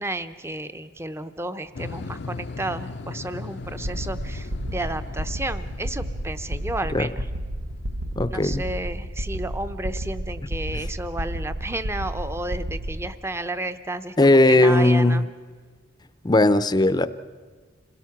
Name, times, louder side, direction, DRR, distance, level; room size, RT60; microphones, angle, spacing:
voice 1, 0.0-7.3 8.3-15.2, right 2 dB, 15° right, 11 dB, 0.7 m, -32 dB
sound 1, 1.7-8.8, left 3 dB, 60° left, 0.6 m, -39 dB
sound 2, 3.6-13.1, right 1 dB, 80° right, 1.1 m, -32 dB
voice 2, 8.2-8.6 10.7-10.8 14.2-15.2 16.2-17.1, left 2 dB, 20° left, 14 dB, 0.6 m, -18 dB
27.0 x 17.5 x 6.0 m, 1.5 s
head